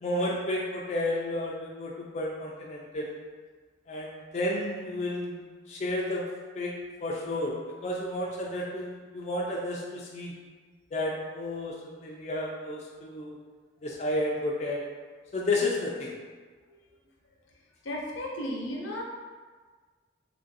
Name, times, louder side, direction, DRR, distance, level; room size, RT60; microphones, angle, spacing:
voice 1, 0.0-3.2 3.9-5.4 5.7-6.3 6.5-6.7 7.0-10.3 10.9-13.4 13.8-14.8 15.3-16.2, left 1 dB, 35° left, -3 dB, 0.3 m, -32 dB
voice 2, 17.8-19.0, left 1 dB, 85° left, -2 dB, 0.7 m, -35 dB
3.0 x 2.5 x 3.9 m, 1.4 s
head